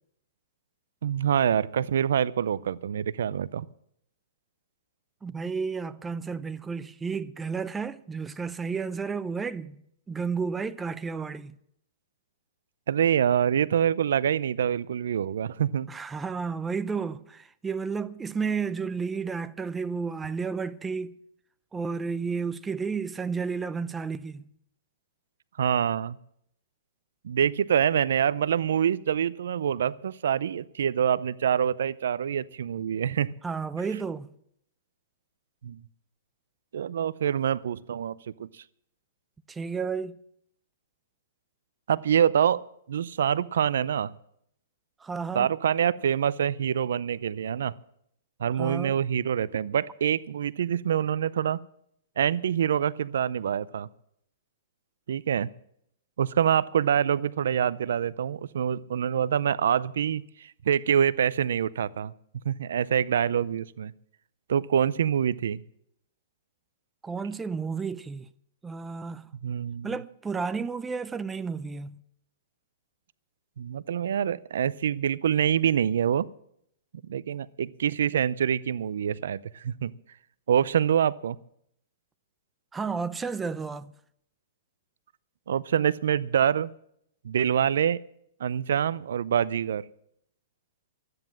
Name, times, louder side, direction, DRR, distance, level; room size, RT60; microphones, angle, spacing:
voice 1, 1.0-3.7 12.9-15.9 25.6-26.2 27.2-33.3 35.6-35.8 36.7-38.5 41.9-44.1 45.3-47.7 48.4-51.6 52.2-53.9 55.1-55.5 56.2-62.1 62.5-63.9 64.5-65.6 69.4-69.9 73.6-76.3 77.1-79.9 80.5-81.4 85.5-86.7 87.2-88.0 88.4-89.9, right 9 dB, 75° right, 0.4 m, -26 dB
voice 2, 5.2-9.8 10.1-11.6 15.9-21.2 21.7-24.5 33.4-34.3 39.5-40.2 45.0-45.5 48.6-48.9 67.0-68.3 68.6-69.3 69.8-72.0 82.7-83.9, right 5 dB, 10° right, 0.5 m, -32 dB
13.0 x 9.3 x 7.6 m
hypercardioid pair, 135°, 0 cm